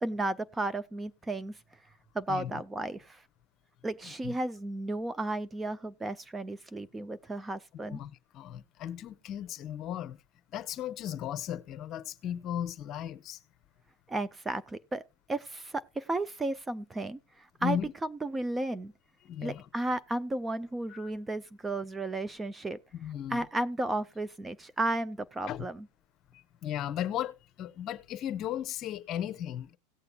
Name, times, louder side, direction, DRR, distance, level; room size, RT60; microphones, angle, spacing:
voice 1, 0.0-1.6 2.1-3.2 3.8-8.0 14.1-15.0 15.3-18.9 19.4-22.8 23.3-25.9, right 2 dB, 10° right, 0.4 m, -33 dB
voice 2, 2.3-2.6 4.2-4.3 7.9-10.2 10.5-13.4 17.6-17.9 19.2-19.7 20.9-21.1 23.0-23.4 25.5-25.7 26.3-29.8, left 10 dB, 40° left, 0.8 m, -36 dB
17.5 x 6.8 x 2.3 m
supercardioid pair, 120°, 0 cm